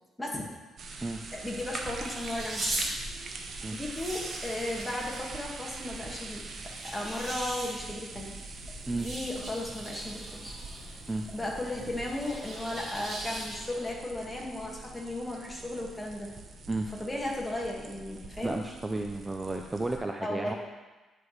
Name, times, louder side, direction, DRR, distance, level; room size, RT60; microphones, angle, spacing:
voice 1, 0.2-0.5 0.9-2.7 3.7-6.4 6.8-8.4 8.9-10.5 11.3-16.3 16.9-18.5 20.2-20.5, left 1 dB, 10° left, -2 dB, 1.7 m, -35 dB
sound 1, 0.8-20.0, right 3 dB, 55° right, 0.8 m, -44 dB
sound 2, 1.1-13.8, right 1 dB, 35° right, 2.3 m, -41 dB
voice 2, 18.4-20.6, right 2 dB, 15° right, 3 dB, 0.4 m, -32 dB
10.0 x 4.8 x 3.2 m, 1.2 s
cardioid pair, 90°, 0 cm